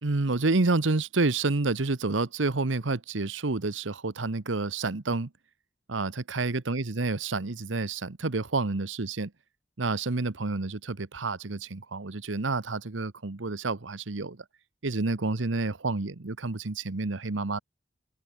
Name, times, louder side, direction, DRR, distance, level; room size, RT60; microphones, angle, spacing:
voice 1, 0.0-5.3 5.9-9.3 9.8-14.4 14.8-17.6, right 3 dB, 85° right, 1.1 m, -29 dB
head